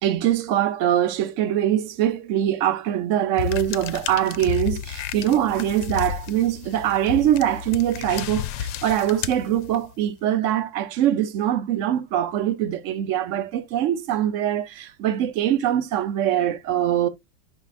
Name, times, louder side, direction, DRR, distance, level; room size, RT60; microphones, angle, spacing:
voice 1, 0.0-17.1, right 11 dB, 70° right, 0.7 m, -23 dB
sound 1, 3.4-10.0, left 10 dB, 75° left, 1.3 m, -32 dB
9.8 x 5.5 x 2.4 m
omnidirectional pair, 2.1 m